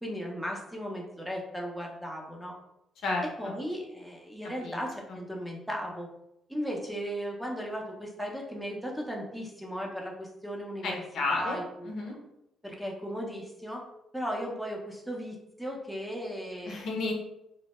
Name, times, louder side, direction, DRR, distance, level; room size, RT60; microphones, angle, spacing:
voice 1, 0.0-2.5 3.4-6.1 6.5-11.0 11.3-11.9 12.6-13.8 14.1-16.9, equal, 5° right, -1 dB, 0.5 m, -36 dB
voice 2, 3.0-3.5 4.6-4.8 5.1-5.2 10.8-11.6 11.8-12.1 16.6-17.1, left 3 dB, 70° left, 0 dB, 0.6 m, -32 dB
2.1 x 2.0 x 2.9 m, 0.84 s
cardioid pair, 90°, 0 cm